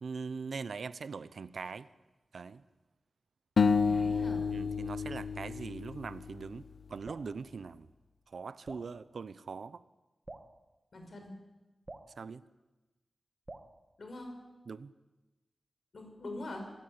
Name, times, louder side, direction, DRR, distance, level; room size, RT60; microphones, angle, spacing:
voice 1, 0.0-1.9 2.3-2.6 4.5-7.9 8.3-9.8 12.2-12.4 14.7-14.9, right 5 dB, 75° right, 15 dB, 0.8 m, -42 dB
sound 1, 3.6-6.8, left 5 dB, 75° left, 1.1 m, -30 dB
voice 2, 3.8-4.4 10.9-11.3 14.0-14.3 15.9-16.7, left 1 dB, 60° left, 4 dB, 5.8 m, -43 dB
Drip, 7.0-7.3 8.7-8.9 10.3-10.5 11.9-12.1 13.5-13.7, right 2 dB, 30° right, 1.8 m, -47 dB
26.0 x 15.0 x 9.8 m, 1.1 s
wide cardioid pair, 125°, 0 cm